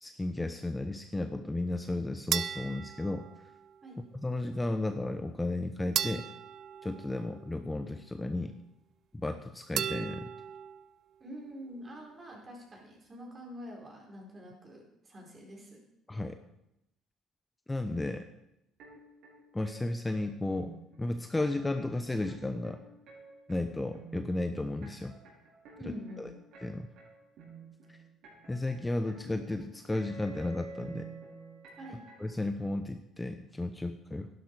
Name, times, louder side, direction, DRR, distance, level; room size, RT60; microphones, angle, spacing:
voice 1, 0.0-3.3 4.1-6.3 6.8-8.5 9.1-10.3 16.1-16.3 17.7-18.2 19.5-22.8 23.5-25.1 25.9-26.3 26.6-26.9 28.5-31.1 32.2-34.3, left 2 dB, 15° left, 8 dB, 0.8 m, -34 dB
sound 1, 2.3-3.8 6.0-7.8 9.8-10.9, right 9 dB, 55° right, 0.4 m, -36 dB
voice 2, 11.2-15.8 25.8-26.3 31.8-32.0, equal, 30° right, -1 dB, 4.9 m, -46 dB
sound 2, 18.8-32.3, right 4 dB, 75° right, 5.5 m, -50 dB
11.5 x 11.0 x 4.8 m, 0.83 s
supercardioid pair, 90°, 0 cm